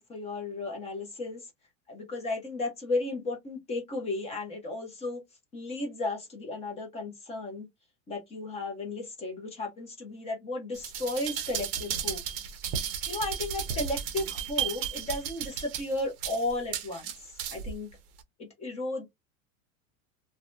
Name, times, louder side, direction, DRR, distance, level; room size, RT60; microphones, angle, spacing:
voice 1, 0.0-1.4 1.9-5.2 5.5-7.7 8.1-12.2 13.1-17.1 17.5-17.9 18.4-19.1, left 2 dB, 15° left, 0.6 m, -34 dB
sound 1, 10.7-17.7 18.2-18.3, right 8 dB, 45° right, 0.6 m, -34 dB
2.7 x 2.1 x 2.5 m
supercardioid pair, 155°, 40 cm